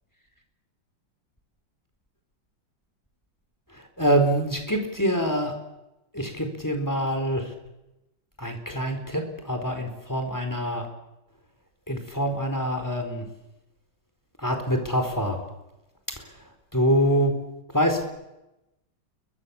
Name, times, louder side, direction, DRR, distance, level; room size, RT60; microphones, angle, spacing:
voice 1, 3.7-5.5 6.1-7.5 8.4-10.9 11.9-13.3 14.4-15.4 16.2-16.3 16.7-17.4 17.7-18.0, equal, 10° left, 4 dB, 4.2 m, -25 dB
29.0 x 23.0 x 7.2 m, 0.94 s
omnidirectional pair, 2.1 m